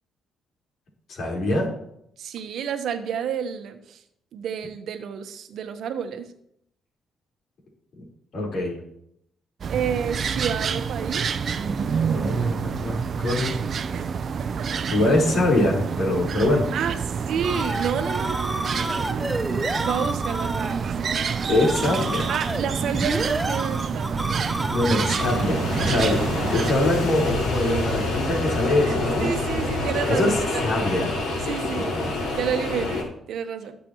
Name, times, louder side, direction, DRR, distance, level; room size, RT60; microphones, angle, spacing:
voice 1, 1.1-1.7 8.3-8.8 12.0-13.6 14.9-16.7 21.5-22.3 24.7-29.3 30.1-30.4 30.6-31.1 31.8-32.1, left 1 dB, 65° left, -2 dB, 4.4 m, -24 dB
voice 2, 2.2-4.0 4.3-6.3 9.7-11.3 13.9-14.1 14.6-14.7 14.9-15.0 16.7-19.3 19.8-20.9 22.3-24.6 28.8-30.6 31.4-31.9 32.4-33.8, right 7 dB, 75° right, 7 dB, 1.1 m, -30 dB
sound 1, 9.6-26.7, right 6 dB, 50° right, 0.7 m, -28 dB
sound 2, 17.4-25.7, right 1 dB, 10° right, 1.0 m, -30 dB
sound 3, 25.2-33.0, left 2 dB, 85° left, 4.9 m, -27 dB
19.5 x 6.9 x 3.1 m, 0.74 s
cardioid pair, 90°, 0 cm